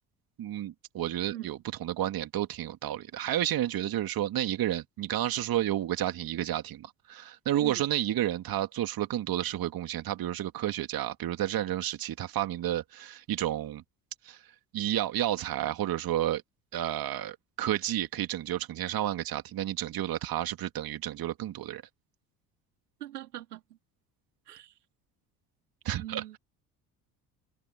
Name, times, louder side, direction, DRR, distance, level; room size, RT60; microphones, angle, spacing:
voice 1, 0.4-13.8 14.2-14.4 14.7-16.4 16.7-21.8 25.8-26.4, right 12 dB, 50° right, 2.5 m, -31 dB
voice 2, 23.0-23.6 24.5-24.8 26.0-26.4, right 13 dB, 85° right, 3.2 m, -41 dB
hypercardioid pair, 60°, 45 cm